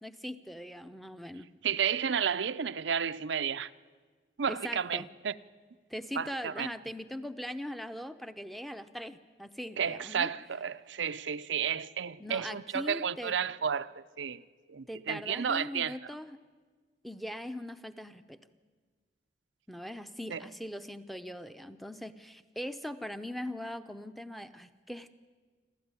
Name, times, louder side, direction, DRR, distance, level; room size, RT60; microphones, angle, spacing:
voice 1, 0.0-1.5 4.5-5.1 5.9-10.3 12.2-13.4 14.9-16.4 17.0-18.4 19.7-25.1, equal, ahead, 0.7 m, -41 dB
voice 2, 1.6-3.7 4.4-5.3 6.2-6.7 9.8-14.4 14.7-16.0 20.3-20.4, right 7 dB, 90° right, 0.6 m, -32 dB
28.0 x 13.0 x 9.7 m
head